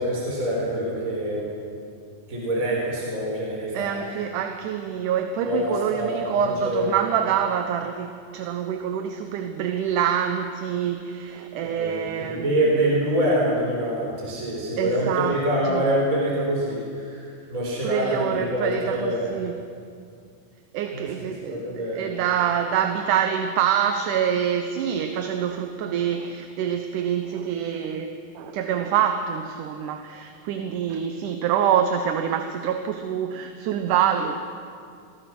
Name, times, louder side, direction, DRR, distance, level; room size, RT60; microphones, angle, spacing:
voice 1, 0.0-1.4 2.3-3.9 5.4-7.0 11.6-19.3 20.9-22.2, right 1 dB, 25° right, -4 dB, 4.7 m, -26 dB
voice 2, 3.7-12.7 14.8-15.9 17.8-19.6 20.7-34.4, right 8 dB, 75° right, 7 dB, 2.4 m, -26 dB
26.5 x 21.0 x 6.1 m, 2.3 s
omnidirectional pair, 3.9 m